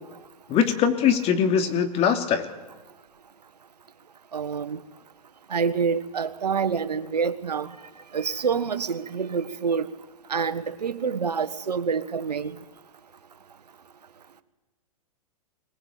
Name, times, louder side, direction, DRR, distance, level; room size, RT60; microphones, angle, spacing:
voice 1, 0.5-2.5, left 7 dB, 30° left, 7 dB, 2.9 m, -22 dB
voice 2, 4.3-4.8 5.5-7.7 8.1-9.9 10.3-12.5, right 6 dB, 90° right, 11 dB, 1.6 m, -27 dB
25.0 x 19.5 x 8.5 m, 1.1 s
hypercardioid pair, 125°, 20 cm